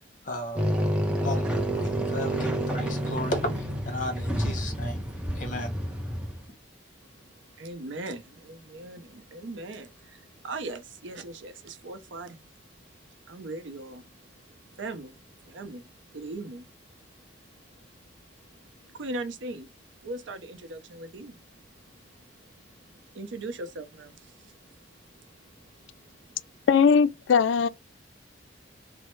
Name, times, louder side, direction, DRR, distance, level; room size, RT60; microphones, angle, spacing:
voice 1, 0.2-0.7 1.2-5.0 5.3-5.7, left 1 dB, 45° left, 0.9 m, -34 dB
sound 1, 0.6-6.5, equal, 5° right, 0.5 m, -29 dB
voice 2, 7.0-12.5 13.0-19.7 20.0-26.6, right 2 dB, 85° right, 0.5 m, -41 dB
voice 3, 26.7-27.7, left 6 dB, 80° left, 0.3 m, -20 dB
3.0 x 2.0 x 3.0 m
head